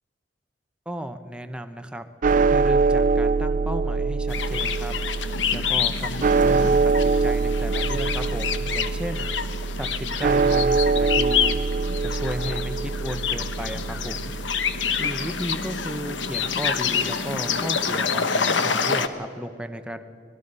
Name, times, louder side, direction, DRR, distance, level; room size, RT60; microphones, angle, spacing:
voice 1, 0.9-2.0 2.5-4.9 5.5-9.3 9.8-11.6 12.0-14.4 15.0-20.0, equal, 5° right, 7 dB, 0.9 m, -34 dB
sound 1, 2.2-16.5, right 4 dB, 45° right, 0.5 m, -24 dB
sound 2, 4.3-19.1, left 6 dB, 80° left, 1.1 m, -27 dB
25.5 x 19.5 x 5.5 m, 2.5 s
head